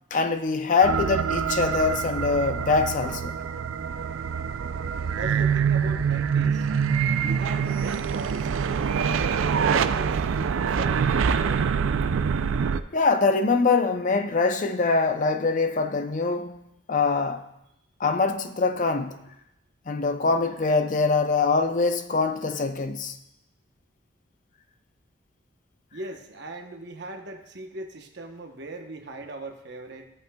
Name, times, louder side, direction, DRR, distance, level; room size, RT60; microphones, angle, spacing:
voice 1, 0.1-3.3 12.9-16.6 16.9-17.5 18.0-19.2 19.9-23.2, left 4 dB, 40° left, 0.5 m, -23 dB
sound 1, 0.8-12.8, right 6 dB, 80° right, 0.4 m, -25 dB
voice 2, 5.1-6.7 7.2-9.3 9.6-11.6 25.9-30.1, right 2 dB, 55° right, 0.9 m, -39 dB
14.0 x 8.1 x 2.3 m
head